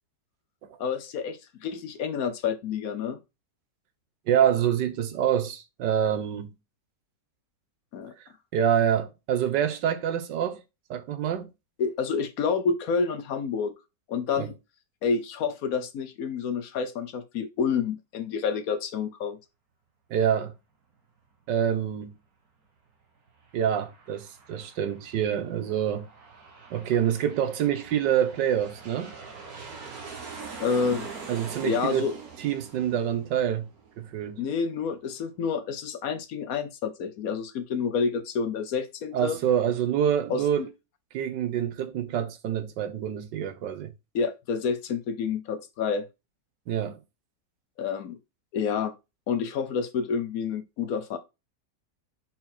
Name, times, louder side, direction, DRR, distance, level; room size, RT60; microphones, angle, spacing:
voice 1, 0.8-3.2 7.9-8.1 11.8-13.7 14.1-14.5 15.0-19.4 30.6-31.1 31.6-32.1 34.4-39.4 40.3-40.7 44.1-46.1 47.8-48.2 48.5-49.0 49.3-51.2, left 5 dB, 65° left, 1.0 m, -29 dB
voice 2, 4.3-6.5 8.5-10.6 10.9-11.5 14.4-14.5 20.1-20.5 21.5-22.1 23.5-26.1 26.7-29.1 31.3-32.1 32.4-33.7 34.0-34.4 39.1-40.7 41.1-43.9 46.7-47.0, right 9 dB, 90° right, 1.6 m, -26 dB
Aircraft, 23.3-34.4, right 4 dB, 60° right, 1.7 m, -44 dB
6.0 x 4.3 x 4.2 m
omnidirectional pair, 1.9 m